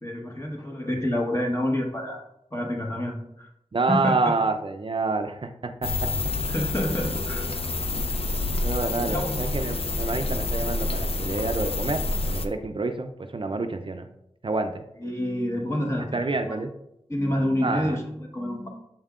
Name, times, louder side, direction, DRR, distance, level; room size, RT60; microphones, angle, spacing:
voice 1, 0.0-2.2 2.5-3.5 3.9-4.3 6.5-7.5 9.1-9.3 15.0-16.6 17.1-18.7, left 1 dB, 25° left, 1 dB, 1.3 m, -28 dB
voice 2, 3.7-5.5 5.8-6.1 8.6-14.1 14.4-14.8 16.1-16.7 17.6-18.0, right 3 dB, 50° right, 7 dB, 0.5 m, -28 dB
sound 1, 5.8-12.5, left 2 dB, 55° left, 0.6 m, -28 dB
7.1 x 5.4 x 2.5 m, 0.79 s
wide cardioid pair, 60°, 12 cm